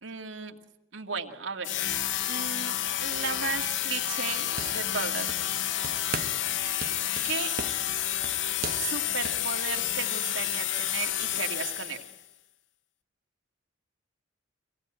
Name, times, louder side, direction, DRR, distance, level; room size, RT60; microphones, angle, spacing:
voice 1, 0.0-0.6 0.9-1.7 2.3-5.3 7.2-7.6 8.8-12.1, right 5 dB, 80° right, 3 dB, 2.2 m, -35 dB
sound 1, 1.6-12.2, left 11 dB, 70° left, 0.8 m, -30 dB
sound 2, 4.3-5.6 5.8-6.5 6.8-9.5, right 5 dB, 50° right, 1.4 m, -39 dB
25.0 x 18.5 x 8.8 m, 0.89 s
head